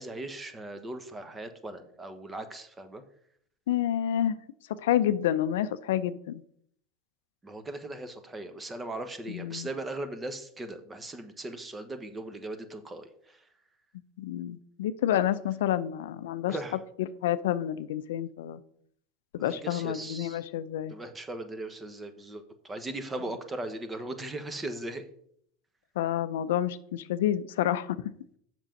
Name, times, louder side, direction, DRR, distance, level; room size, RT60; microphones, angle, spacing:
voice 1, 0.0-3.0 7.4-13.4 16.5-16.8 19.4-20.4 20.9-25.0, right 2 dB, 20° right, 9 dB, 1.2 m, -38 dB
voice 2, 3.7-4.4 4.8-6.4 9.3-9.7 14.2-16.6 17.0-18.6 19.3-20.9 26.0-28.0, left 11 dB, 80° left, 14 dB, 0.5 m, -29 dB
7.3 x 6.1 x 5.2 m, 0.66 s
hypercardioid pair, 100°, 0 cm